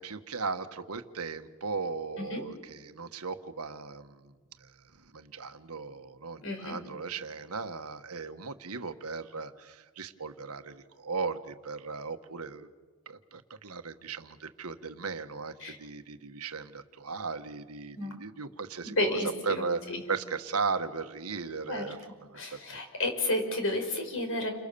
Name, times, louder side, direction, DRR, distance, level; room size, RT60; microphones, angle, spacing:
voice 1, 0.0-12.7 13.0-19.2 19.4-22.8, right 4 dB, 85° right, 8 dB, 1.5 m, -37 dB
voice 2, 6.4-6.8 15.6-15.8 18.0-18.1 18.8-20.0 21.7-21.8 22.3-24.5, left 1 dB, 65° left, 4 dB, 5.9 m, -31 dB
30.0 x 27.0 x 7.0 m, 1.4 s
head